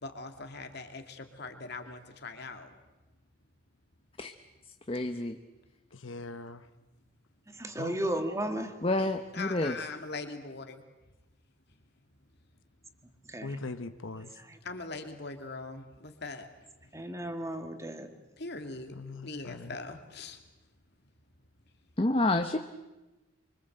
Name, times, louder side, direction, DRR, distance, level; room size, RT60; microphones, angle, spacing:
voice 1, 0.0-2.7 9.3-10.8 14.6-16.5 18.4-18.9 19.2-20.4, left 3 dB, 55° left, 6 dB, 2.4 m, -41 dB
voice 2, 4.9-5.4 8.8-9.7 22.0-22.6, left 2 dB, 25° left, 7 dB, 0.9 m, -28 dB
voice 3, 6.0-6.6 7.8-7.9 13.4-14.3 19.0-19.7, left 3 dB, 70° left, 10 dB, 1.0 m, -40 dB
voice 4, 7.5-8.8 13.3-13.6 14.2-14.6 16.9-18.1, right 1 dB, 15° right, 6 dB, 1.9 m, -35 dB
25.0 x 24.5 x 7.9 m, 1.1 s
head